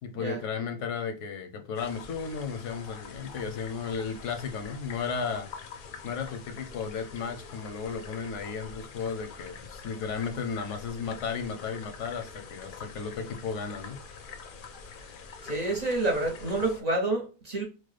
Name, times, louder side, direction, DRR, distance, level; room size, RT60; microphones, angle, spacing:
voice 1, 0.0-5.5 6.0-14.0, left 6 dB, 85° left, 1.0 m, -34 dB
sound 1, 1.7-16.8, left 5 dB, 60° left, 0.6 m, -45 dB
voice 2, 15.4-17.6, right 2 dB, 40° right, 0.7 m, -28 dB
3.1 x 2.1 x 3.2 m
omnidirectional pair, 1.2 m